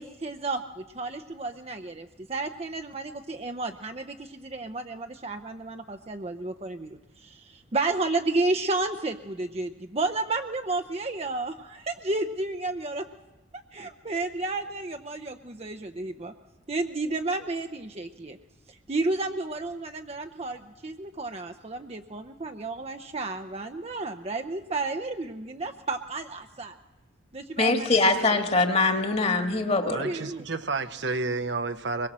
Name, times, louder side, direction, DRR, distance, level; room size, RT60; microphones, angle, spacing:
voice 1, 0.0-13.1 13.7-16.3 16.7-18.4 18.7-26.8 27.3-28.4 29.8-30.4, right 2 dB, 30° right, 0.7 m, -32 dB
voice 2, 27.6-30.0, left 3 dB, 30° left, 1.7 m, -23 dB
voice 3, 29.9-32.1, right 3 dB, 60° right, 0.9 m, -30 dB
23.5 x 21.5 x 7.5 m
head